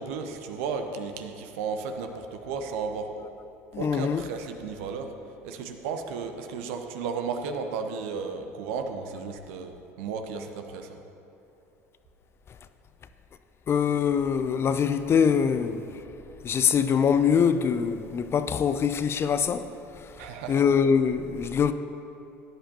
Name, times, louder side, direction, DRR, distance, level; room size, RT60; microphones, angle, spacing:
voice 1, 0.0-3.3 3.8-5.1 5.4-11.0 20.2-20.7, right 5 dB, 60° right, 1.0 m, -34 dB
voice 2, 3.7-4.2 13.7-15.8 16.4-19.6 20.5-21.7, left 7 dB, 30° left, 0.5 m, -23 dB
17.5 x 11.0 x 2.8 m
figure-of-eight pair, 65°, 8 cm